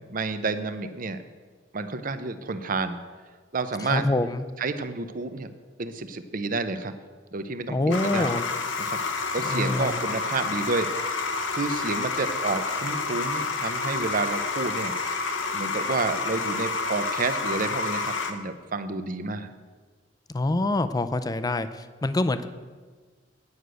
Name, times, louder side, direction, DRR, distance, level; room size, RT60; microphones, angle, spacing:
voice 1, 0.1-1.2 1.7-3.0 3.5-4.1 4.6-5.5 5.8-7.0 7.3-8.3 8.9-9.0 9.3-10.9 11.5-14.9 15.5-19.5, right 3 dB, 45° right, 10 dB, 0.7 m, -30 dB
voice 2, 3.8-4.5 7.7-8.4 9.4-10.0 20.3-22.5, left 2 dB, 20° left, 12 dB, 0.4 m, -26 dB
sound 1, 7.9-18.3, left 4 dB, 85° left, 1.0 m, -29 dB
9.6 x 6.3 x 8.1 m, 1.4 s
head